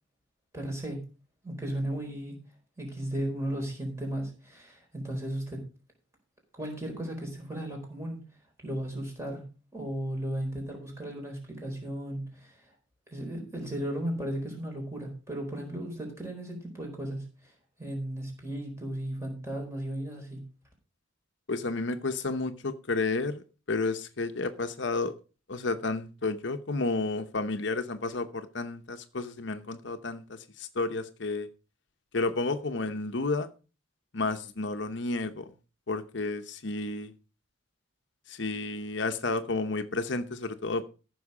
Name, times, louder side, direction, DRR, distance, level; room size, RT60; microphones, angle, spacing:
voice 1, 0.5-1.0 1.4-2.4 2.8-5.7 6.6-8.2 8.6-9.4 9.7-12.5 13.1-17.5 17.8-20.4, right 1 dB, 15° right, 1 dB, 4.3 m, -35 dB
voice 2, 21.5-25.1 25.5-31.5 32.1-33.5 34.1-35.5 35.9-37.1 38.3-40.8, left 3 dB, 65° left, 9 dB, 0.9 m, -31 dB
14.5 x 6.3 x 4.9 m, 0.34 s
head